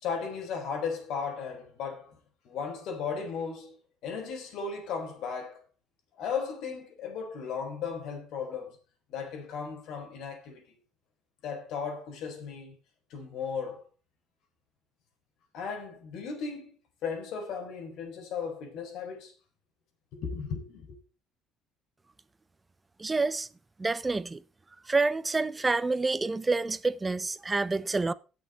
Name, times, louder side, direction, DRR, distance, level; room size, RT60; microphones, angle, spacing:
voice 1, 0.0-2.2 2.4-3.8 4.0-5.6 6.2-8.8 9.1-10.6 11.4-12.8 13.1-13.8 15.5-16.7 17.0-19.3 20.1-21.0, left 6 dB, 60° left, 4.3 m, -36 dB
voice 2, 23.0-23.5 23.8-24.4 24.9-28.1, right 3 dB, 15° right, 0.5 m, -28 dB
16.5 x 6.8 x 4.3 m
cardioid pair, 160°, 0 cm